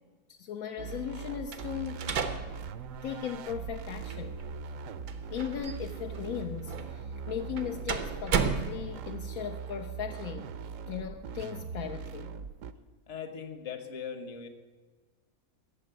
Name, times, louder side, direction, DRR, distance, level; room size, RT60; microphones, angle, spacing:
voice 1, 0.3-2.0 3.0-4.4 5.3-10.5 10.9-12.3, left 9 dB, 75° left, 5 dB, 1.1 m, -37 dB
sound 1, 0.8-12.7, right 6 dB, 65° right, 1.0 m, -41 dB
sound 2, 1.5-9.3, right 6 dB, 90° right, 1.5 m, -36 dB
voice 2, 13.1-14.5, left 6 dB, 55° left, 9 dB, 1.4 m, -40 dB
13.5 x 7.4 x 9.0 m, 1.4 s
omnidirectional pair, 1.5 m